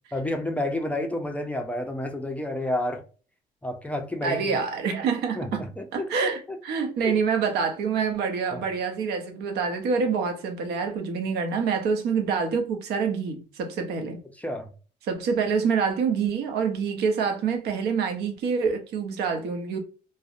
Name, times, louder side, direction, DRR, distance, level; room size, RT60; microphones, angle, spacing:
voice 1, 0.1-3.0 3.6-4.6 5.4-6.3 7.0-7.1 8.5-8.6 14.4-14.7, left 1 dB, 10° left, 0.4 m, -30 dB
voice 2, 4.2-5.7 5.9-14.2 15.1-19.8, right 5 dB, 75° right, 0.6 m, -26 dB
2.6 x 2.0 x 2.4 m
cardioid pair, 110°, 17 cm